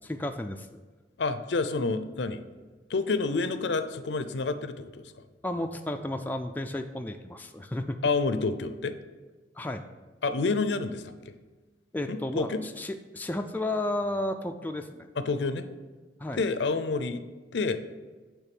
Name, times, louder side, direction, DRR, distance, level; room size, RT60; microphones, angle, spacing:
voice 1, 0.0-0.8 5.4-8.0 9.6-9.8 11.9-15.1 16.2-16.4, left 1 dB, 10° left, 5 dB, 0.3 m, -33 dB
voice 2, 1.2-2.4 2.9-5.1 8.0-9.0 10.2-11.3 12.1-12.6 15.2-15.7 16.4-17.2 17.5-17.8, left 3 dB, 70° left, 11 dB, 0.5 m, -28 dB
9.0 x 3.5 x 6.0 m, 1.3 s
head